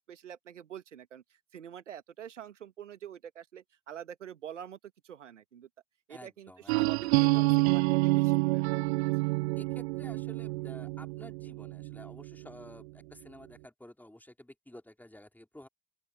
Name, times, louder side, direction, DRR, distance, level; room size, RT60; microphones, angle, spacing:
voice 1, 0.0-4.8 5.0-5.7 6.1-9.0, right 9 dB, 80° right, 1.8 m, -46 dB
voice 2, 6.1-7.5 9.6-15.7, left 1 dB, 5° left, 4.9 m, -52 dB
another chordal meander, 6.7-12.5, right 24 dB, 60° right, 0.5 m, -28 dB
open air
figure-of-eight pair, 60°, 36 cm